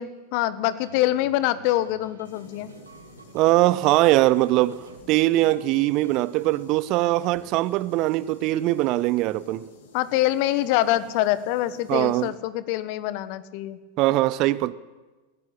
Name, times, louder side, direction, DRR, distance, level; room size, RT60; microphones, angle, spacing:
voice 1, 0.0-2.7 9.9-13.8, left 14 dB, 45° left, 14 dB, 1.4 m, -25 dB
sound 1, 0.8-6.7, right 4 dB, 75° right, 2.7 m, -49 dB
sound 2, 2.2-12.3, left 4 dB, 60° left, 4.4 m, -52 dB
voice 2, 3.3-4.8 5.1-9.6 11.9-12.3 14.0-14.7, right 17 dB, 40° right, 18 dB, 0.8 m, -21 dB
20.0 x 17.0 x 9.9 m, 1.2 s
figure-of-eight pair, 90°, 0 cm